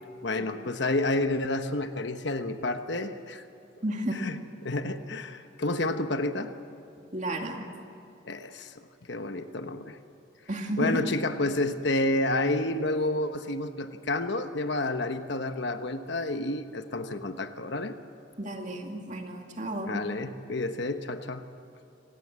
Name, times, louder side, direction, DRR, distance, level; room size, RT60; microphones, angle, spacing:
voice 1, 0.2-3.4 4.1-4.4 4.6-6.5 8.2-8.7 9.1-10.0 10.8-17.9 19.9-21.4, left 2 dB, 60° left, 8 dB, 1.1 m, -30 dB
voice 2, 3.8-4.2 7.1-7.7 10.5-11.0 18.4-20.0, right 1 dB, 35° right, 2 dB, 2.4 m, -32 dB
26.0 x 18.0 x 7.6 m, 2.8 s
head